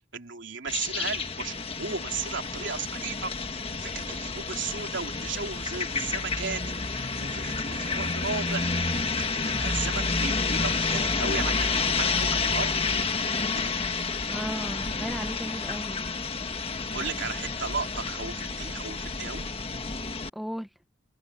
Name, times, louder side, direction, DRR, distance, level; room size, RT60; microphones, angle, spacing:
voice 1, 0.1-13.0 13.5-13.7 16.9-19.5, right 5 dB, 70° right, 3.5 m, -36 dB
sound 1, 0.7-20.3, left 4 dB, 30° left, 1.5 m, -29 dB
voice 2, 14.3-16.0 20.3-20.7, equal, ahead, 0.9 m, -35 dB
open air
head